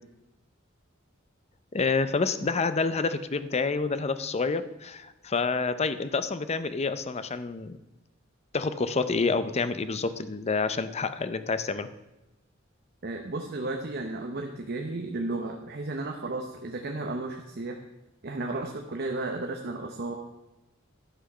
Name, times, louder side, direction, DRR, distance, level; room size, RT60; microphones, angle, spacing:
voice 1, 1.7-7.8 8.5-11.9, left 4 dB, 35° left, 12 dB, 0.5 m, -28 dB
voice 2, 13.0-17.8 18.2-20.1, right 2 dB, 55° right, 3 dB, 0.9 m, -33 dB
11.5 x 6.1 x 5.5 m, 0.98 s
head